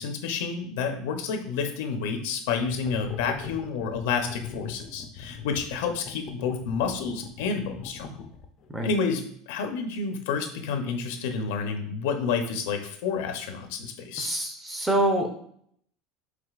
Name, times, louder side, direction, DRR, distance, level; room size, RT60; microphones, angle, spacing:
voice 1, 0.0-8.1 8.8-9.2 9.5-14.3, left 5 dB, 75° left, 5 dB, 0.6 m, -29 dB
sound 1, 2.6-8.7, left 6 dB, 35° left, 0.4 m, -41 dB
voice 2, 14.2-15.3, right 1 dB, 10° right, 3 dB, 0.6 m, -25 dB
4.9 x 3.5 x 2.4 m, 0.64 s
cardioid pair, 165°, 0 cm